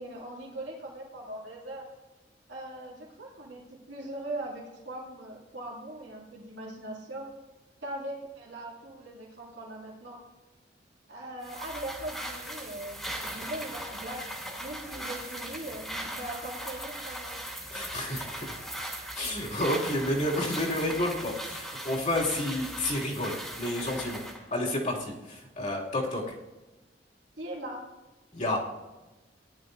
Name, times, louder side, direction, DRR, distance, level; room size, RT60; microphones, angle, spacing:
voice 1, 0.0-1.9 2.5-7.3 7.8-10.2 11.1-14.2 14.6-17.4 27.4-27.8, right 1 dB, 75° right, -5 dB, 2.7 m, -40 dB
sound 1, 11.4-24.4, right 1 dB, ahead, 2.5 m, -39 dB
voice 2, 17.7-18.6 19.1-24.2 24.5-26.3 28.3-28.6, left 1 dB, 45° left, -3 dB, 2.6 m, -30 dB
18.0 x 11.0 x 2.7 m, 1.1 s
head